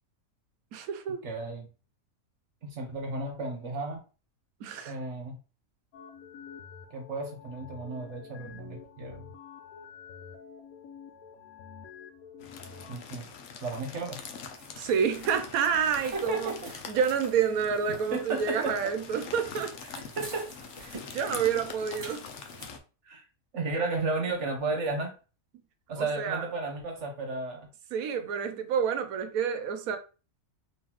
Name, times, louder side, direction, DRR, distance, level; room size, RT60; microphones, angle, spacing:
voice 1, 0.7-1.2 4.6-5.0 14.8-16.5 16.9-19.7 20.9-22.3 26.0-26.5 27.9-30.0, right 7 dB, 85° right, 1.1 m, -29 dB
voice 2, 1.2-1.7 2.6-4.0 4.9-5.4 6.9-9.3 12.9-13.3 13.6-14.2 16.1-16.5 18.1-18.7 20.1-20.5 23.0-23.2 23.5-25.1 25.9-27.7, right 3 dB, 60° right, 1.2 m, -33 dB
sound 1, 5.9-13.0, left 6 dB, 85° left, 1.1 m, -48 dB
sound 2, 12.4-22.8, left 6 dB, 65° left, 0.9 m, -44 dB
sound 3, 14.2-22.7, right 2 dB, 35° right, 1.7 m, -49 dB
3.7 x 3.0 x 3.0 m
omnidirectional pair, 1.5 m